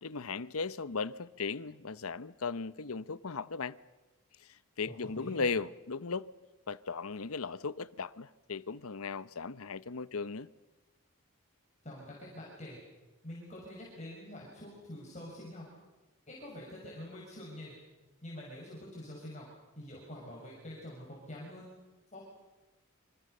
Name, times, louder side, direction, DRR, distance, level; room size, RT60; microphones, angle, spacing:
voice 1, 0.0-3.8 4.8-6.3 6.7-10.5, left 4 dB, 85° left, 0.9 m, -37 dB
voice 2, 4.9-5.4 11.8-12.8 13.2-15.6 16.3-17.7 18.2-19.5 19.8-21.7 22.1-22.2, left 1 dB, 35° left, 6.4 m, -46 dB
28.0 x 26.0 x 6.7 m
head